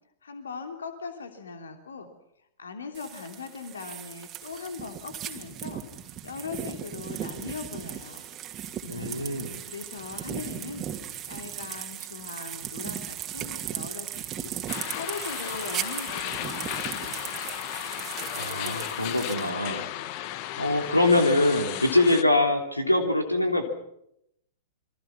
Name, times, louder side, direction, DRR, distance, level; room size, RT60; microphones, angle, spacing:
voice 1, 0.2-2.1 2.6-6.0 6.2-8.2 9.7-10.9 11.3-14.5 14.9-17.4, left 5 dB, 70° left, 6 dB, 3.1 m, -40 dB
sound 1, 2.9-19.5, right 10 dB, 25° right, 2.4 m, -37 dB
voice 2, 8.8-9.6 18.3-19.9 20.6-23.7, left 2 dB, 85° left, 6 dB, 3.2 m, -24 dB
sound 2, 14.7-22.2, left 13 dB, 40° left, 1.4 m, -35 dB
28.0 x 24.0 x 5.9 m, 0.76 s
figure-of-eight pair, 100°, 0 cm